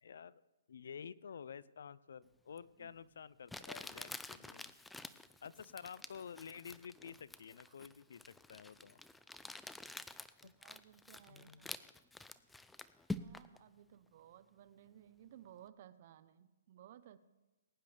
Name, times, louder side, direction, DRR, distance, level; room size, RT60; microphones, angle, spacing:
voice 1, 0.0-0.4 0.7-4.7 5.4-9.0 10.4-10.5 11.3-11.6, left 7 dB, 70° left, 20 dB, 0.5 m, -51 dB
voice 2, 2.5-2.9 7.7-7.8 10.4-11.7 13.2-17.2, right 11 dB, 45° right, 14 dB, 0.8 m, -59 dB
Crumpling crinkling, 2.6-2.7 3.5-13.6, left 2 dB, 5° left, 0.5 m, -48 dB
20.5 x 10.5 x 3.5 m, 1.1 s
hypercardioid pair, 140°, 0 cm